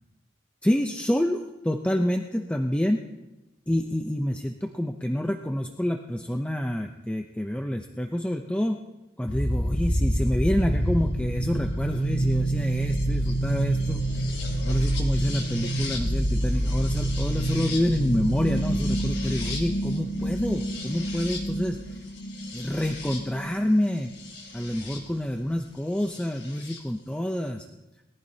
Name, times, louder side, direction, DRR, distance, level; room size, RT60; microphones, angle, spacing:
voice 1, 0.6-3.0 3.7-8.8 9.2-14.3 14.6-22.0 22.5-24.1 24.5-27.7, equal, 5° left, 3 dB, 0.6 m, -28 dB
sound 1, 9.3-25.0 26.2-26.8, right 1 dB, 70° left, 3.1 m, -28 dB
21.5 x 14.5 x 2.8 m, 1.0 s
head